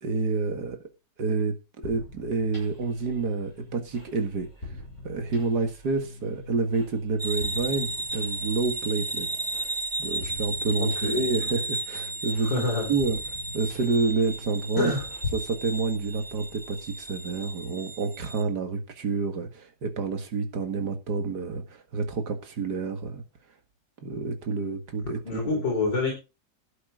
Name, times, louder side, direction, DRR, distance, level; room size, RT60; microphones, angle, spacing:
voice 1, 0.0-0.8 1.2-4.5 5.0-9.3 10.0-12.6 12.9-13.2 13.5-14.9 15.3-23.2 24.0-25.6, right 4 dB, 60° right, 2.4 m, -28 dB
sound 1, 1.8-17.5, left 2 dB, 40° left, 6.5 m, -46 dB
sound 2, 7.2-18.4, right 2 dB, 20° right, 0.6 m, -34 dB
voice 2, 10.8-11.2 12.4-12.9 14.8-15.1 25.2-26.1, left 3 dB, 80° left, 5.0 m, -27 dB
12.0 x 9.5 x 3.9 m
omnidirectional pair, 2.0 m